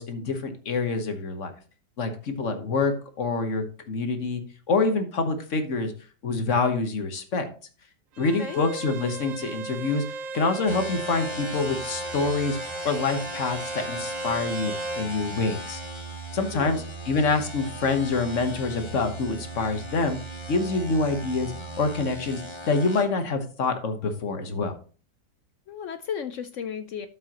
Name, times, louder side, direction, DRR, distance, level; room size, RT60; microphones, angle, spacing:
voice 1, 0.0-1.5 2.0-4.4 4.7-5.9 6.2-7.5 8.2-10.0 10.3-12.6 12.8-15.8 16.3-20.2 20.5-21.5 21.8-24.7, left 3 dB, 50° left, 1.3 m, -26 dB
Bowed string instrument, 8.1-15.1, right 3 dB, 60° right, 0.9 m, -36 dB
voice 2, 8.2-8.6 16.5-16.8 25.7-27.1, left 7 dB, 70° left, 0.7 m, -34 dB
sound 1, 10.7-23.0, right 1 dB, 20° left, 0.9 m, -38 dB
12.5 x 5.6 x 2.9 m
omnidirectional pair, 1.8 m